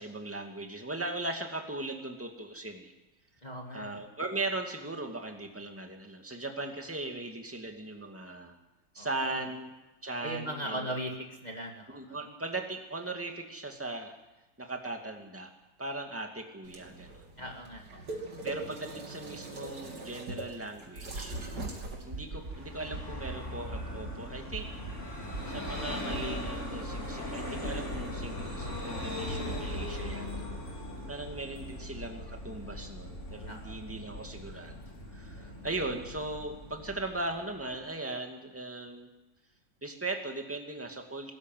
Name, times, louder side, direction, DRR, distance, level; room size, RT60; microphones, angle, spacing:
voice 1, 0.0-2.9 3.7-8.6 8.9-9.7 10.0-11.0 11.9-14.2 14.6-15.5 15.8-17.5 18.4-21.4 22.0-24.7 25.5-30.3 31.1-34.7 35.1-39.1 39.8-41.3, right 2 dB, 5° right, 3 dB, 2.2 m, -38 dB
voice 2, 3.4-4.0 9.0-9.4 10.2-11.1 11.4-12.2 17.4-18.2 33.5-33.8 35.4-35.5, equal, 25° left, 1 dB, 2.2 m, -39 dB
sound 1, 16.6-22.8, right 2 dB, 60° right, 3.4 m, -41 dB
sound 2, 21.3-21.7 22.1-22.5 22.9-23.3 23.7-24.1 24.5-24.9 25.3-25.7 26.1-26.5, right 2 dB, 35° right, 4.1 m, -42 dB
Vehicle, 22.3-37.8, left 1 dB, 40° left, 4.1 m, -39 dB
22.0 x 13.5 x 9.3 m, 1.1 s
omnidirectional pair, 2.0 m